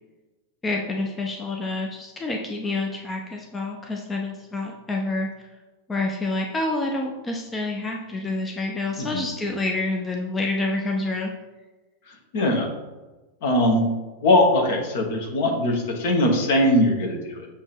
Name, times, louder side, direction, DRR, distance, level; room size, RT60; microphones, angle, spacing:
voice 1, 0.6-5.5 5.9-11.3, left 2 dB, 15° left, 1 dB, 0.6 m, -28 dB
voice 2, 12.1-12.7 13.4-13.8 14.2-17.5, left 1 dB, 55° left, 1 dB, 1.3 m, -21 dB
7.1 x 3.0 x 5.3 m, 1.2 s
figure-of-eight pair, 90°, 0 cm